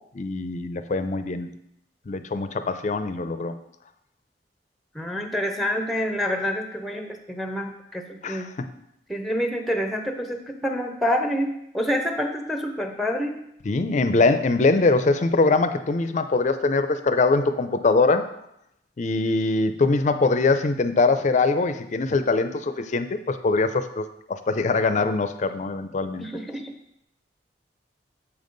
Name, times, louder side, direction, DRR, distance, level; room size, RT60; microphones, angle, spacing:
voice 1, 0.1-1.5 2.1-3.5 8.2-8.7 13.7-18.3 19.0-26.5, left 3 dB, 45° left, 10 dB, 0.4 m, -23 dB
voice 2, 4.9-8.5 9.1-13.3 26.2-26.7, equal, ahead, 4 dB, 0.6 m, -27 dB
7.0 x 5.3 x 3.9 m, 0.77 s
head